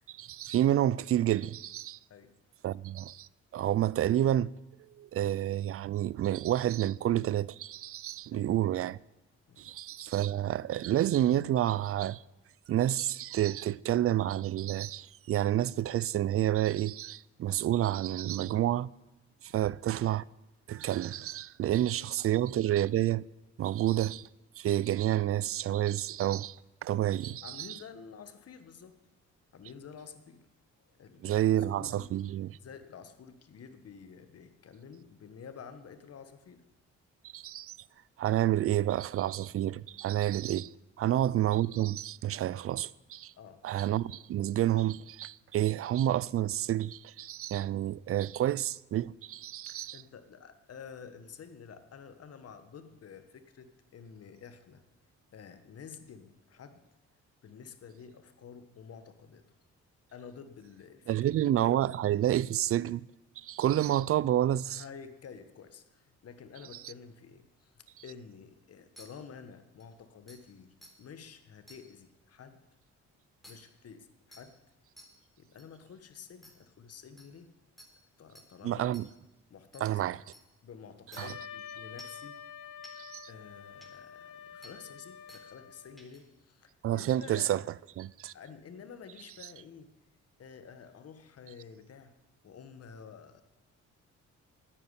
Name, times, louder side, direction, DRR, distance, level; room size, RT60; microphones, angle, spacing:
voice 1, 0.1-2.0 2.6-4.5 5.0-9.0 9.6-12.2 12.7-18.9 19.4-20.2 20.7-23.2 23.6-24.3 24.6-27.7 31.2-32.5 37.3-37.7 38.2-40.7 41.0-43.3 43.6-50.0 61.1-63.1 63.4-64.8 78.6-79.1 79.8-80.2 81.2-81.3 83.0-83.3 86.8-87.6 88.0-88.3, right 12 dB, 50° right, 0.4 m, -29 dB
voice 2, 27.4-29.0 29.5-30.5 31.0-31.5 31.8-32.1 32.6-36.6 43.4-43.8 49.6-54.8 55.3-56.9 57.4-59.4 60.1-61.2 64.6-72.6 73.5-74.6 75.4-77.5 78.2-78.9 79.5-80.0 80.6-82.4 83.3-87.6 88.3-89.9 90.4-92.1 92.4-93.4, left 6 dB, 55° left, 1.4 m, -50 dB
sound 1, 69.0-69.1 69.8-69.9 70.3-70.4 70.8-70.9 71.7-71.8 73.4-73.5 74.3-74.4 75.0-75.1 75.6-75.7 76.4-76.5 77.2-77.3 77.8-77.9 78.3-78.5 78.9-79.0 79.7-79.8 80.3-80.4 81.1-81.2 82.0-82.2 82.8-82.9 83.8-83.9 84.6-84.7 85.3-85.4 86.0-86.2, equal, ahead, 3.7 m, -51 dB
Wind instrument woodwind instrument, 81.1-86.0, left 8 dB, 80° left, 0.8 m, -47 dB
9.5 x 9.0 x 9.9 m
cardioid pair, 90°, 30 cm